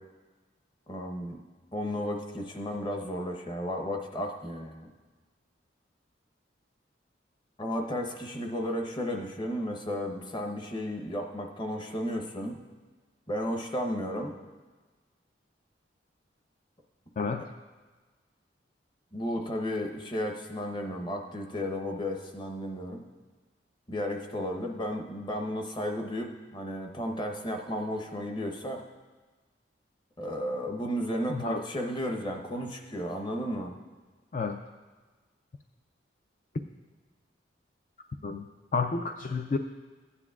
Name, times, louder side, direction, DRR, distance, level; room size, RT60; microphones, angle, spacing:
voice 1, 0.9-1.4 1.7-4.9 7.6-12.6 13.3-14.3 17.4-17.5 19.1-23.0 23.9-28.8 30.2-33.8, equal, 25° left, 3 dB, 0.8 m, -33 dB
voice 2, 31.3-31.6 34.3-34.6 38.2-38.4 38.7-39.6, left 4 dB, 40° left, 5 dB, 0.3 m, -30 dB
15.0 x 9.8 x 2.4 m, 1.3 s
head